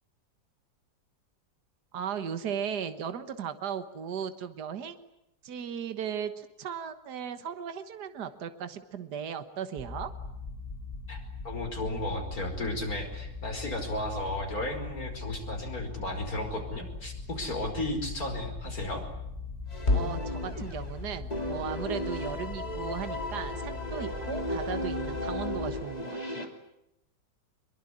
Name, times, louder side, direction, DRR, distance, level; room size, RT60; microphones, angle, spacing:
voice 1, 1.9-5.1 5.4-10.1 19.9-26.5, right 8 dB, 65° right, 10 dB, 1.9 m, -36 dB
sound 1, 9.8-25.8, left 4 dB, ahead, 7.6 m, -40 dB
voice 2, 11.1-19.0, left 1 dB, 55° left, 4 dB, 5.6 m, -34 dB
sound 2, 19.7-21.0 21.3-26.5, left 1 dB, 20° left, 3.1 m, -35 dB
sound 3, 19.9-24.2, left 2 dB, 35° left, 3.0 m, -35 dB
24.0 x 23.5 x 10.0 m, 0.84 s
omnidirectional pair, 1.9 m